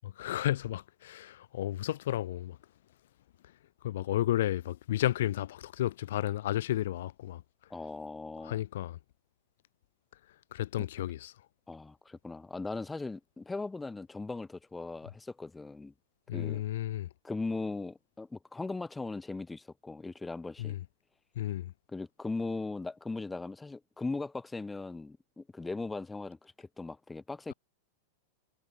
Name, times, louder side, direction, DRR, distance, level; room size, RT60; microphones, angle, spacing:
voice 1, 0.0-2.6 3.8-7.4 8.4-9.0 10.5-11.3 16.3-17.1 20.6-20.8 21.4-21.7, left 13 dB, 70° left, 7.4 m, -32 dB
voice 2, 7.7-8.6 11.7-15.9 16.3-16.6 17.2-20.7 21.9-27.5, left 3 dB, 10° left, 6.7 m, -39 dB
hypercardioid pair, 100°, 0 cm